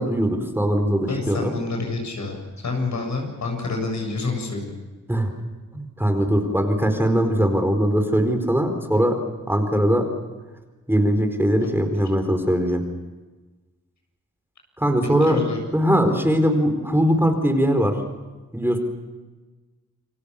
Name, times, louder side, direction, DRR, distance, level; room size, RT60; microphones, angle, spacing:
voice 1, 0.0-1.5 5.1-5.3 5.7-9.2 9.5-10.1 10.9-12.8 14.8-15.4 15.7-18.0 18.5-18.8, equal, 5° right, 5 dB, 4.3 m, -21 dB
voice 2, 1.1-2.4 2.6-4.7 11.6-11.8 15.2-15.6, left 3 dB, 70° left, 3 dB, 7.8 m, -28 dB
29.0 x 23.0 x 7.0 m, 1.2 s
cardioid pair, 80°, 30 cm